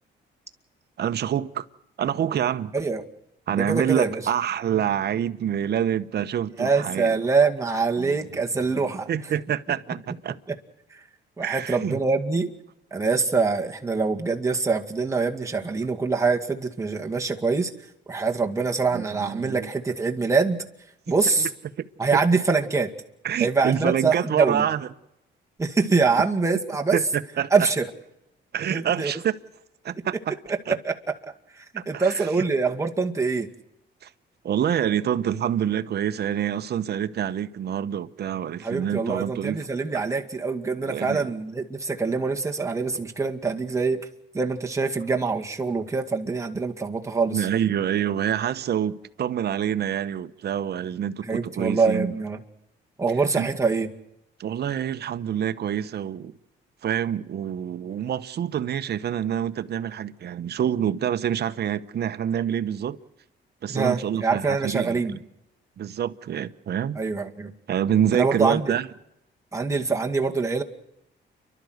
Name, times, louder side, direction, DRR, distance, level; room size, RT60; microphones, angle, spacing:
voice 1, 1.0-1.7 2.0-2.7 3.5-7.1 8.0-8.2 8.7-10.4 11.4-12.0 18.9-19.7 21.1-21.5 21.8-21.9 22.1-22.2 23.2-24.9 26.9-27.5 28.5-29.4 29.8-30.4 30.7-30.8 31.8-32.4 34.0-34.1 34.4-39.6 39.9-40.0 40.9-41.3 47.3-52.1 53.3-53.5 54.4-56.4 56.8-63.0 63.6-65.2 65.8-67.0 67.7-68.9, right 9 dB, 55° right, 1.0 m, -27 dB
voice 2, 3.5-4.2 6.6-9.1 10.5-10.6 11.4-12.5 12.9-17.7 18.1-20.6 21.1-21.5 22.0-22.9 23.4-24.7 25.6-27.0 27.5-27.8 28.7-29.1 30.7-30.9 31.2-33.5 38.6-44.1 44.3-47.5 51.2-52.4 53.0-53.9 63.7-65.2 67.0-67.5 68.1-68.7 69.5-70.6, right 4 dB, 15° right, 2.1 m, -24 dB
29.5 x 12.0 x 8.0 m
cardioid pair, 90°, 20 cm